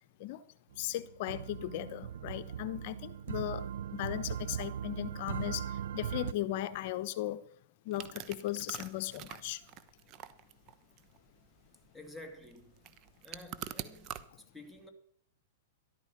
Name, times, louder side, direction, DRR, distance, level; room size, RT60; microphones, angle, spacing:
sound 1, 0.7-6.3, right 9 dB, 70° right, 0.5 m, -39 dB
voice 1, 0.8-3.7 3.9-7.4 7.8-9.7, left 14 dB, 55° left, 0.9 m, -37 dB
sound 2, 7.9-14.2, right 11 dB, 40° right, 1.0 m, -46 dB
voice 2, 11.9-12.9 13.2-14.9, left 1 dB, ahead, 2.7 m, -51 dB
13.0 x 12.0 x 5.9 m
hypercardioid pair, 120°, 0 cm